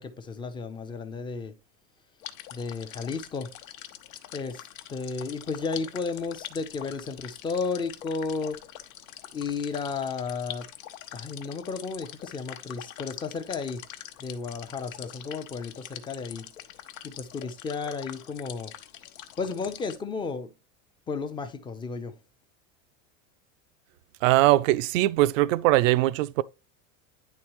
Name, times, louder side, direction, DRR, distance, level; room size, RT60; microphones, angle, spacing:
voice 1, 0.0-1.5 2.5-3.5 4.3-8.6 9.3-10.7 11.1-13.8 14.2-16.5 17.0-18.7 19.4-20.5 21.1-22.1, left 4 dB, 10° left, 0.5 m, -33 dB
sound 1, 2.2-20.0, left 11 dB, 85° left, 1.1 m, -44 dB
voice 2, 24.2-26.4, right 16 dB, 75° right, 0.5 m, -21 dB
10.5 x 3.8 x 3.0 m
supercardioid pair, 155°, 39 cm